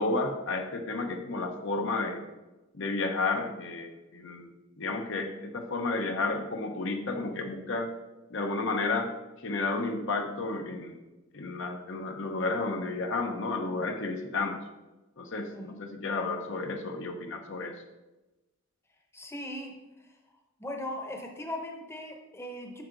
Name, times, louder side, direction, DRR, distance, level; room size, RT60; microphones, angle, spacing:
voice 1, 0.0-2.2 2.7-4.5 4.8-7.9 8.3-9.1 9.4-11.0 11.3-14.6 15.2-17.8, left 3 dB, 60° left, 4 dB, 0.9 m, -32 dB
voice 2, 19.1-20.1 20.6-22.8, left 1 dB, 10° left, 2 dB, 0.9 m, -39 dB
9.2 x 6.4 x 3.9 m, 1.1 s
head